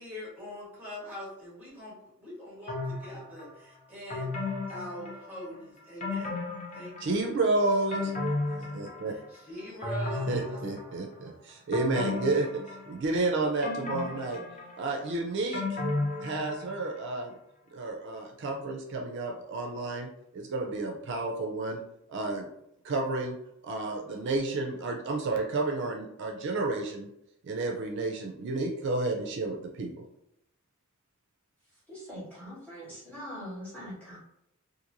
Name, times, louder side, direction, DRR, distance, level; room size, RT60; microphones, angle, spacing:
voice 1, 0.0-4.3 4.7-6.4 6.7-7.4 7.9-8.1 8.8-10.6, left 1 dB, 10° right, -6 dB, 1.2 m, -43 dB
sound 1, 2.7-3.5 4.1-5.5 6.0-7.3 7.7-9.4 9.8-11.2 11.7-13.2 13.6-16.9 17.2-17.3, left 3 dB, 35° left, 0.7 m, -34 dB
voice 2, 7.0-8.1 8.6-9.1 10.3-14.4 14.8-15.8 16.2-17.3 17.7-20.1 20.3-21.8 22.1-22.5 22.8-23.4 23.6-27.1 27.4-29.9, right 2 dB, 55° right, 1 dB, 0.4 m, -31 dB
voice 3, 31.9-34.2, equal, 10° left, -8 dB, 1.4 m, -42 dB
2.9 x 2.6 x 2.5 m, 0.80 s
head